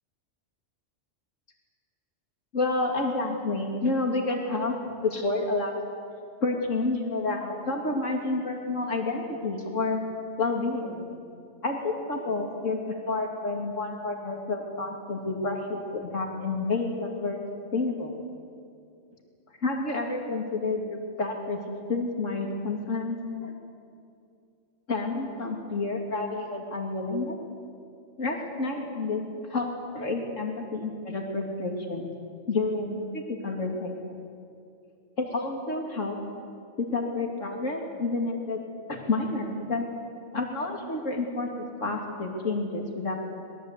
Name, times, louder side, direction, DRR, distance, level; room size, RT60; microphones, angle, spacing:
voice 1, 2.5-5.8 6.4-10.0 10.4-11.1 11.6-17.4 17.7-18.1 19.6-21.6 21.9-23.5 24.9-27.4 28.2-29.2 29.5-32.1 32.5-34.0 35.2-36.2 36.8-38.6 38.9-39.8 40.3-41.5 41.8-43.1, left 3 dB, 80° left, 1 dB, 3.0 m, -29 dB
25.5 x 21.0 x 8.3 m, 2.4 s
omnidirectional pair, 1.3 m